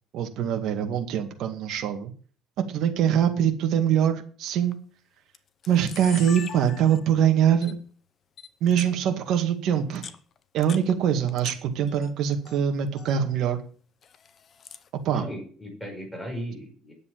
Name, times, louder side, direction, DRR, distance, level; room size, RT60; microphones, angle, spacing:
voice 1, 0.1-2.1 2.7-4.8 5.7-7.8 8.6-10.0 10.5-13.6 15.0-15.2, right 9 dB, 60° right, 5 dB, 2.0 m, -23 dB
Camera, 4.5-4.7 5.3-5.4 5.6-7.2 7.6-7.7 8.4-8.9 9.8-11.6 11.9-12.6 12.9-13.2 14.0-14.9, left 7 dB, 35° left, 0.9 m, -42 dB
voice 2, 15.1-16.9, equal, 5° left, 0 dB, 5.3 m, -36 dB
9.9 x 7.7 x 7.6 m, 0.43 s
cardioid pair, 145°, 0 cm